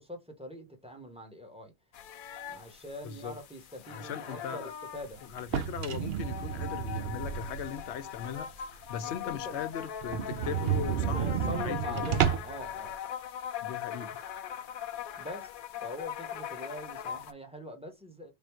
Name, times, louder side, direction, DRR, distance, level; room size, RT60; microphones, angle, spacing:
voice 1, 0.0-1.7 2.5-5.2 9.0-9.6 11.1-13.1 15.2-15.5 15.8-18.3, equal, 5° right, 0.8 m, -43 dB
sound 1, 1.9-17.3, left 9 dB, 60° left, 0.6 m, -41 dB
voice 2, 3.9-4.7 5.3-8.5 8.9-12.0 13.6-14.2, left 8 dB, 80° left, 0.9 m, -39 dB
sound 2, 5.4-7.9 8.4-8.5 8.9-9.0 9.2-9.3 9.6-9.7 10.0-12.6, right 9 dB, 65° right, 0.8 m, -31 dB
3.5 x 2.6 x 4.4 m
omnidirectional pair, 1.1 m